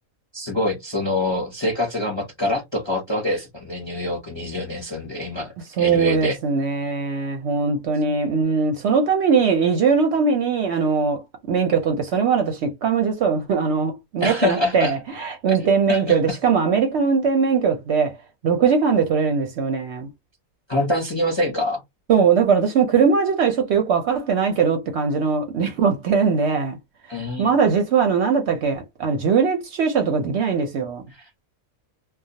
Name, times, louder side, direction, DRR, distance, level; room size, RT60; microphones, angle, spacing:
voice 1, 0.3-5.5 5.8-6.4 14.2-14.9 15.9-16.2 20.7-21.8 27.1-27.6 31.1-31.4, left 1 dB, 30° left, 0.6 m, -25 dB
voice 2, 5.8-11.2 11.5-18.1 18.4-20.1 22.1-26.8 27.4-31.0, right 5 dB, 65° right, 0.7 m, -20 dB
2.3 x 2.1 x 2.7 m
omnidirectional pair, 1.4 m